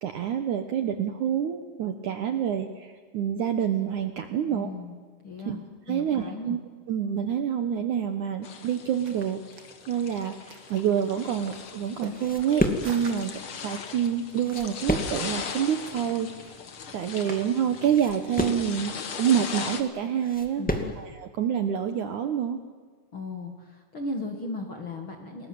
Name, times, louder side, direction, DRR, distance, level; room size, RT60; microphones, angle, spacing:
voice 1, 0.0-4.7 5.5-5.6 5.9-6.6 6.9-9.4 9.9-16.6 16.9-18.9 19.2-20.6 21.0-22.6, right 9 dB, 65° right, 7 dB, 2.0 m, -27 dB
voice 2, 4.5-4.9 5.2-5.6 5.9-6.6 20.6-20.9 23.1-25.5, left 2 dB, 40° left, 3 dB, 2.0 m, -36 dB
sound 1, 8.4-19.8, left 6 dB, 60° left, 1.4 m, -39 dB
sound 2, 8.8-17.4, right 5 dB, 40° right, 1.8 m, -48 dB
sound 3, 11.6-21.1, left 1 dB, 10° left, 0.4 m, -32 dB
30.0 x 20.0 x 7.8 m, 1.5 s
omnidirectional pair, 4.8 m